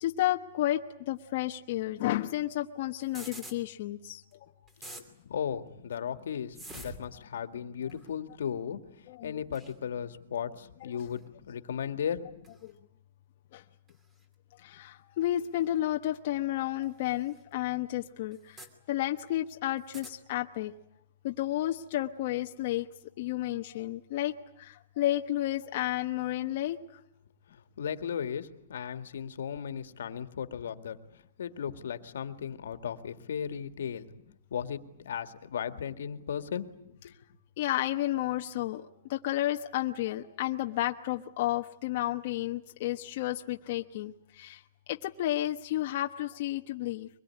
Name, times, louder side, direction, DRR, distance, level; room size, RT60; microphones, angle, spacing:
voice 1, 0.0-4.2 9.1-9.4 10.9-11.0 12.6-12.8 13.5-13.6 14.6-20.7 21.2-22.9 23.2-27.0 37.6-44.6 44.9-47.1, left 14 dB, 45° left, 4 dB, 1.1 m, -32 dB
sound 1, 3.0-3.6 4.3-4.4 4.7-5.0 6.5-7.1 7.9-8.1 9.5-9.7 11.0-11.2 12.4-12.6 13.9-14.0 15.4-15.5 16.8-16.9 17.3-17.4 18.3-18.7 19.8-20.1, right 1 dB, 10° right, 2.6 m, -46 dB
voice 2, 5.3-8.8 9.2-12.2 27.5-31.0 31.4-34.1 34.5-36.7 37.0-37.1, left 8 dB, 80° left, 9 dB, 2.0 m, -36 dB
24.0 x 22.0 x 9.8 m, 0.76 s
hypercardioid pair, 165°, 0 cm